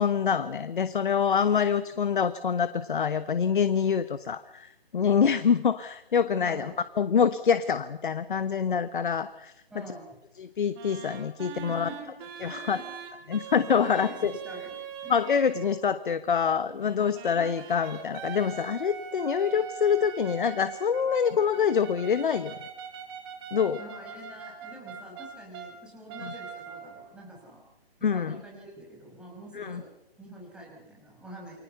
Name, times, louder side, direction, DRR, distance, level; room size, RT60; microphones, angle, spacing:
voice 1, 0.0-9.5 10.4-11.9 12.4-12.8 13.3-14.3 15.1-22.5 23.5-23.8 26.2-26.3 28.0-28.4 29.5-29.8, left 7 dB, 55° left, 13 dB, 1.1 m, -26 dB
voice 2, 6.4-6.7 9.7-10.1 11.5-12.0 12.5-12.8 13.2-13.3 13.8-14.8 15.0-15.1 23.8-27.6 28.0-29.9 30.2-31.6, right 1 dB, 5° right, -3 dB, 5.9 m, -46 dB
sound 1, 10.7-15.9 16.8-25.8 26.1-27.1, right 7 dB, 25° right, 2.8 m, -42 dB
29.0 x 23.5 x 5.8 m, 0.86 s
figure-of-eight pair, 145°, 31 cm